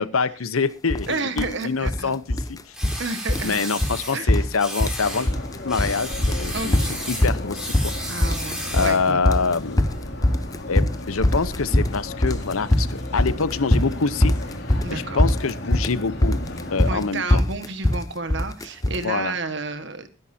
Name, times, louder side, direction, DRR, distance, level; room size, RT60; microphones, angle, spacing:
voice 1, 0.0-2.6 3.4-5.3 5.6-8.0 8.7-9.8 10.7-14.3 14.9-16.4 16.7-17.4 19.0-19.3, left 4 dB, 85° left, 16 dB, 0.8 m, -25 dB
sound 1, 0.9-1.1 1.4-2.0 2.3-3.0 3.3-3.5 3.8-4.0 4.3-5.0 5.3-5.9 6.2-19.0, left 1 dB, 15° left, 0.7 m, -21 dB
voice 2, 1.1-2.1 3.0-3.7 4.1-4.4 6.5-6.9 8.1-9.2 14.8-15.2 16.9-20.1, right 3 dB, 60° right, 9 dB, 1.5 m, -31 dB
sound 2, 2.7-4.2 4.6-5.3 5.7-9.0, equal, 5° right, 3.9 m, -33 dB
sound 3, 5.0-17.1, left 1 dB, 55° left, 2.7 m, -34 dB
21.5 x 10.5 x 2.7 m, 0.30 s
head